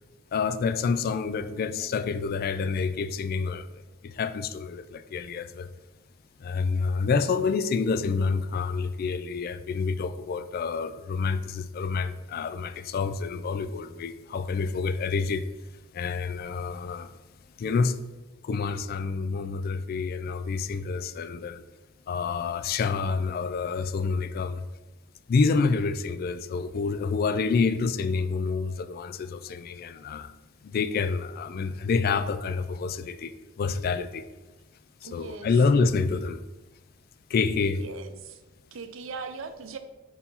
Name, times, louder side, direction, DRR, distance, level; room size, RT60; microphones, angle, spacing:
voice 1, 0.3-3.7 4.0-5.7 6.4-15.4 15.9-17.1 17.6-18.0 18.4-21.6 22.1-24.6 25.3-30.3 30.6-33.3 33.6-34.2 35.1-36.4 37.3-37.8, left 4 dB, 50° left, 0.3 m, -28 dB
voice 2, 35.0-35.6 37.8-38.4 38.7-39.8, right 4 dB, 75° right, 0.6 m, -39 dB
4.4 x 4.3 x 5.4 m
head